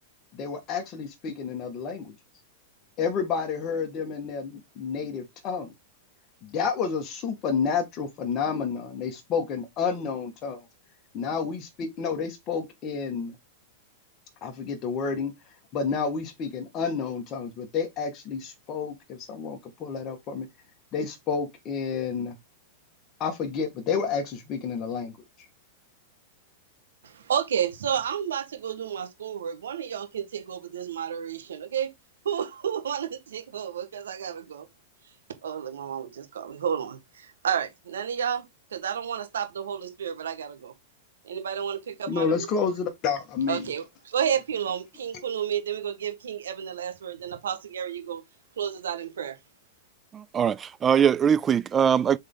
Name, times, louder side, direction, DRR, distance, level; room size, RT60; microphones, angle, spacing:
voice 1, 0.3-2.1 3.0-5.7 6.4-10.6 11.1-13.4 14.4-15.3 15.7-20.5 20.9-22.4 23.2-25.2 42.1-43.7, left 5 dB, 35° left, 1.9 m, -30 dB
voice 2, 27.0-31.9 32.2-34.7 35.4-38.4 38.7-40.7 41.2-42.5 43.5-48.2 48.6-49.4, right 8 dB, 90° right, 1.6 m, -31 dB
voice 3, 50.1-52.2, right 8 dB, 20° right, 0.4 m, -22 dB
6.3 x 3.9 x 3.9 m
hypercardioid pair, 130°, 0 cm